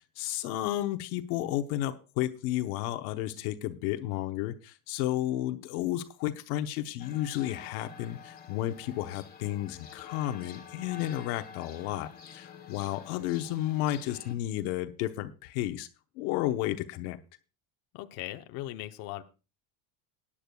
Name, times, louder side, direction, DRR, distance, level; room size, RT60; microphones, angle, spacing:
voice 1, 0.2-15.9 16.2-17.2, left 14 dB, 80° left, 8 dB, 1.0 m, -32 dB
sound 1, 7.0-14.4, left 7 dB, 20° left, 1.5 m, -49 dB
voice 2, 17.9-19.2, left 15 dB, 55° left, 7 dB, 0.9 m, -39 dB
19.5 x 10.0 x 2.3 m, 0.31 s
cardioid pair, 140°, 44 cm